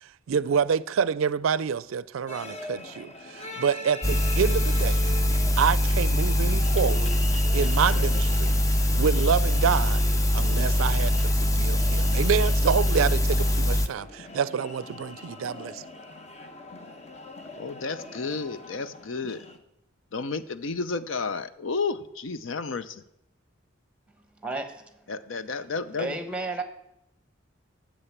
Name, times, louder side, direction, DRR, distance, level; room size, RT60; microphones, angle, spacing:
voice 1, 0.0-5.0 5.6-7.1 7.5-8.5 8.9-10.0 10.3-15.8, right 7 dB, 90° right, 0.4 m, -27 dB
sound 1, 2.3-19.6, left 1 dB, 30° left, 1.0 m, -41 dB
sound 2, 4.0-13.9, left 1 dB, 15° left, 0.5 m, -23 dB
voice 2, 17.6-19.4 20.1-23.0 25.1-26.1, left 4 dB, 75° left, 0.6 m, -32 dB
voice 3, 24.4-25.1 26.0-26.6, right 2 dB, 5° right, 1.1 m, -33 dB
9.8 x 7.9 x 7.2 m
head